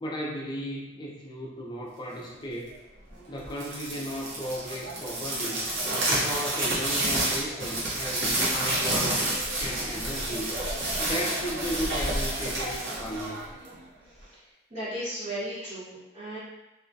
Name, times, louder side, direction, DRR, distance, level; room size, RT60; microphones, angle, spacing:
voice 1, 0.0-2.8 3.3-5.6 6.1-9.2 9.6-10.6 11.0-13.5, equal, 20° left, -2 dB, 0.4 m, -35 dB
sound 1, 3.5-13.8, right 1 dB, 60° right, 0.7 m, -29 dB
voice 2, 14.0-14.4 14.7-16.4, equal, 35° right, -16 dB, 0.9 m, -36 dB
2.3 x 2.0 x 2.6 m, 1.0 s
head